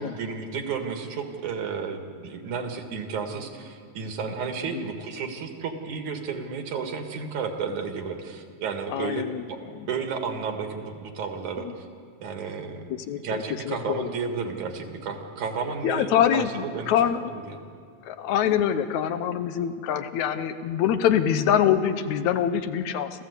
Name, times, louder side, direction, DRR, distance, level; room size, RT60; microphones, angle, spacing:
voice 1, 0.0-9.6 9.9-11.9 12.2-16.9 17.2-17.6, right 5 dB, 75° right, 5 dB, 3.2 m, -32 dB
voice 2, 8.9-9.4 11.6-11.7 12.9-14.1 15.8-17.3 18.1-23.2, left 9 dB, 75° left, 10 dB, 2.1 m, -25 dB
28.5 x 14.5 x 8.2 m, 2.2 s
omnidirectional pair, 3.4 m